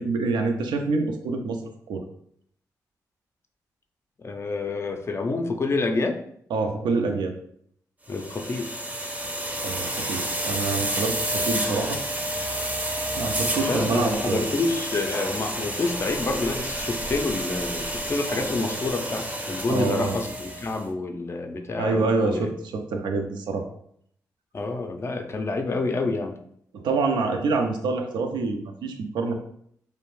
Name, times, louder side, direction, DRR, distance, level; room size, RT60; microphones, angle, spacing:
voice 1, 0.0-1.6 1.9-2.0 6.5-7.3 9.6-12.0 13.1-14.5 19.7-20.2 21.8-23.7 26.7-29.3, right 3 dB, 80° right, 5 dB, 0.4 m, -26 dB
voice 2, 4.2-6.2 8.1-8.7 13.7-22.5 24.5-26.4, left 3 dB, 35° left, 4 dB, 0.4 m, -28 dB
sound 1, 8.1-20.8, right 1 dB, 20° right, 0.5 m, -30 dB
2.5 x 2.0 x 3.0 m, 0.67 s
supercardioid pair, 45°, 8 cm